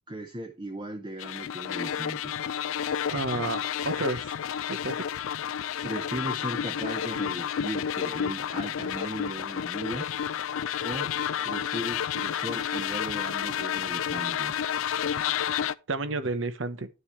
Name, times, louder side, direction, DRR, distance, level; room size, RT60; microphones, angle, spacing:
voice 1, 0.1-2.4 5.8-10.1 10.8-11.1 11.4-14.6, right 1 dB, 25° right, 0.8 m, -37 dB
sound 1, 1.2-15.7, left 8 dB, 90° left, 0.4 m, -30 dB
voice 2, 3.1-4.3 4.7-5.1 15.9-16.9, right 3 dB, 75° right, 1.0 m, -31 dB
11.0 x 6.7 x 3.1 m
head